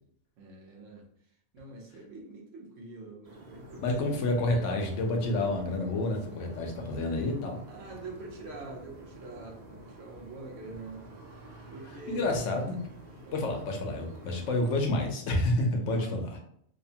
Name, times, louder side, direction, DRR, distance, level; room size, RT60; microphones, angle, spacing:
voice 1, 0.4-1.0 1.5-4.2 7.7-11.1 11.7-12.4 13.1-13.6 15.8-16.2, right 3 dB, 80° right, 0 dB, 1.0 m, -45 dB
sound 1, 3.2-14.7, right 1 dB, 55° right, 0.5 m, -49 dB
voice 2, 3.8-7.6 12.1-12.8 13.3-16.4, left 2 dB, 80° left, 2 dB, 0.9 m, -29 dB
2.8 x 2.1 x 2.7 m, 0.68 s
omnidirectional pair, 1.3 m